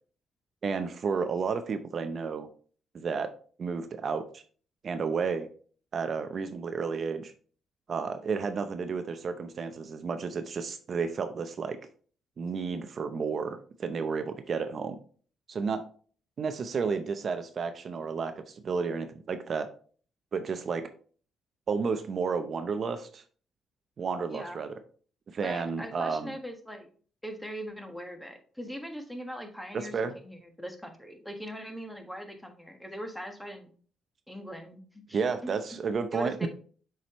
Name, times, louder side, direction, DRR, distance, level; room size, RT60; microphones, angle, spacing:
voice 1, 0.6-2.5 2.9-3.3 3.6-4.4 4.8-5.5 5.9-7.3 7.9-11.8 12.4-15.0 15.5-15.8 16.4-19.7 20.3-20.8 21.7-23.2 24.0-24.7 25.3-26.4 29.7-30.1 35.1-36.5, right 5 dB, 50° right, 8 dB, 0.6 m, -31 dB
voice 2, 24.3-24.6 25.4-26.9 27.2-33.7 34.3-35.5 36.1-36.5, equal, 5° left, 5 dB, 1.4 m, -41 dB
7.3 x 4.9 x 3.0 m, 0.43 s
cardioid pair, 90°, 0 cm